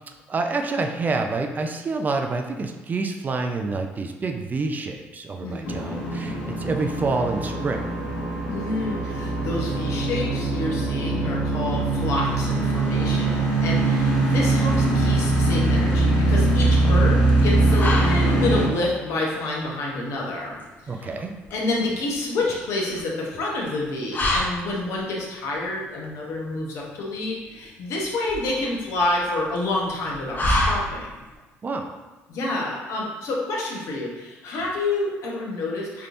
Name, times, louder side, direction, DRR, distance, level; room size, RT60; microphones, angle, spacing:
voice 1, 0.3-7.9 20.9-21.3 31.6-32.0, right 3 dB, 35° right, 5 dB, 0.4 m, -27 dB
voice 2, 5.4-5.7 8.5-20.6 20.8-21.1 21.5-31.2 32.3-36.1, left 2 dB, 65° left, -2 dB, 0.9 m, -28 dB
sound 1, 5.6-18.7, right 2 dB, 90° left, 1.2 m, -22 dB
sound 2, 14.6-31.4, left 1 dB, 35° left, 0.6 m, -31 dB
3.4 x 2.8 x 2.6 m, 1.2 s
supercardioid pair, 75°, 5 cm